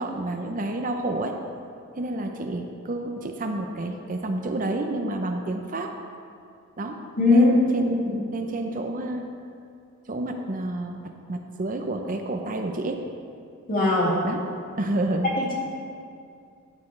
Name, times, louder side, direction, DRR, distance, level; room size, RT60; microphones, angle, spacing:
voice 1, 0.0-1.4 2.0-5.9 6.8-7.0 7.3-8.0 8.3-9.3 10.1-13.0 14.2-14.4 14.8-15.3, right 1 dB, 40° right, 4 dB, 0.6 m, -29 dB
voice 2, 7.2-7.5 8.1-8.2 13.7-14.2 15.4-15.5, left 2 dB, 40° left, -4 dB, 2.4 m, -20 dB
14.0 x 9.4 x 3.2 m, 2.4 s
head